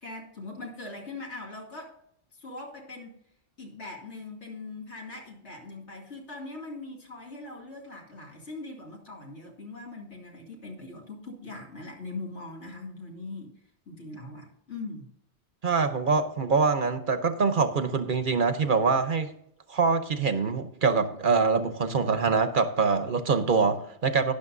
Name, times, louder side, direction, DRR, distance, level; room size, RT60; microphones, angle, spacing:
voice 1, 0.0-2.0 2.4-3.1 3.6-13.5 13.9-15.1, left 2 dB, 80° left, -1 dB, 2.6 m, -41 dB
voice 2, 15.6-19.3 19.7-24.3, right 4 dB, 50° right, 9 dB, 0.8 m, -24 dB
12.0 x 10.0 x 2.6 m, 0.74 s
omnidirectional pair, 1.2 m